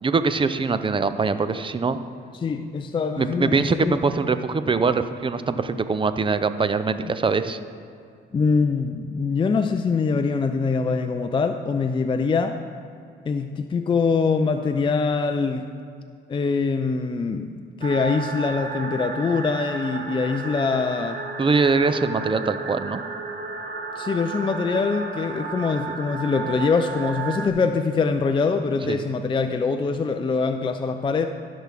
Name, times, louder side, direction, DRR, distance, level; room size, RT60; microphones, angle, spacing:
voice 1, 0.0-2.0 3.2-7.6 21.4-23.0 28.9-29.0, right 4 dB, 25° right, 11 dB, 0.5 m, -23 dB
voice 2, 2.4-4.0 8.3-12.6 13.3-15.7 16.3-21.2 24.0-31.3, left 4 dB, 25° left, 7 dB, 0.4 m, -23 dB
sound 1, 17.8-27.5, right 4 dB, 45° right, 1.0 m, -33 dB
15.0 x 6.2 x 3.5 m, 2.4 s
cardioid pair, 90°, 20 cm